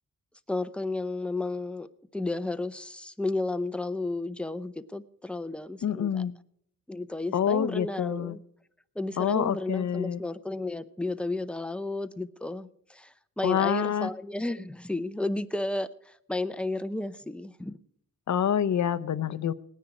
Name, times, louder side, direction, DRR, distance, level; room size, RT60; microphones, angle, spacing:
voice 1, 0.5-1.9 2.1-6.2 6.9-8.4 9.0-17.8, left 2 dB, 5° left, 12 dB, 0.6 m, -33 dB
voice 2, 5.8-6.3 7.3-8.4 9.2-10.2 13.4-14.1 18.3-19.5, left 8 dB, 55° left, 15 dB, 0.7 m, -27 dB
18.5 x 9.9 x 4.8 m, 0.70 s
wide cardioid pair, 130°, 34 cm